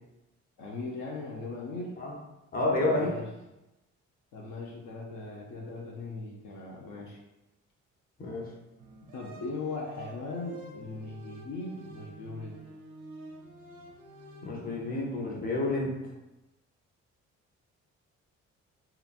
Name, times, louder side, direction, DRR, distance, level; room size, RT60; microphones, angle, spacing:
voice 1, 0.6-1.9 2.7-3.3 4.3-7.2 9.1-12.6, left 3 dB, 70° left, -2 dB, 0.6 m, -39 dB
voice 2, 2.5-3.1 8.2-8.5 14.4-15.9, left 2 dB, 30° left, -2 dB, 0.7 m, -29 dB
sound 1, 8.8-15.1, equal, 90° right, 0.5 m, -49 dB
2.9 x 2.4 x 2.5 m, 0.99 s
cardioid pair, 90°, 30 cm